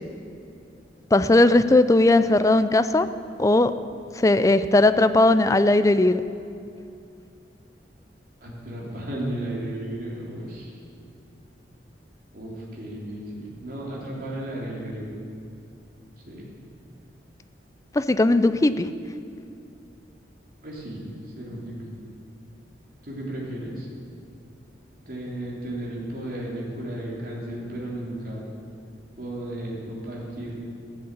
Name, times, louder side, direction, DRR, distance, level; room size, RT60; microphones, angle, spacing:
voice 1, 1.1-3.1 3.4-3.7 4.2-6.2 18.0-18.9, left 2 dB, 20° left, 12 dB, 0.4 m, -18 dB
voice 2, 8.4-10.7 12.3-15.1 16.3-16.5 20.6-21.8 23.0-23.9 25.1-28.4 29.2-30.6, right 1 dB, 55° right, -4 dB, 3.3 m, -34 dB
14.5 x 7.7 x 8.3 m, 2.6 s
head